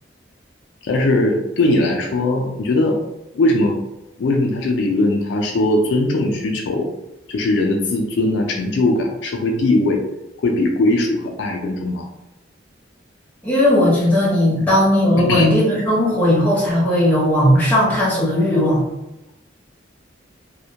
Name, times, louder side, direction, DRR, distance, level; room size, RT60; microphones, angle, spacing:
voice 1, 0.8-3.0 3.3-3.8 4.2-6.9 7.3-10.0 10.4-12.0 14.6-14.7 15.2-15.5, left 2 dB, 75° left, 2 dB, 0.3 m, -19 dB
voice 2, 13.4-18.8, left 1 dB, 10° left, -7 dB, 0.8 m, -16 dB
2.1 x 2.1 x 2.7 m, 0.91 s
head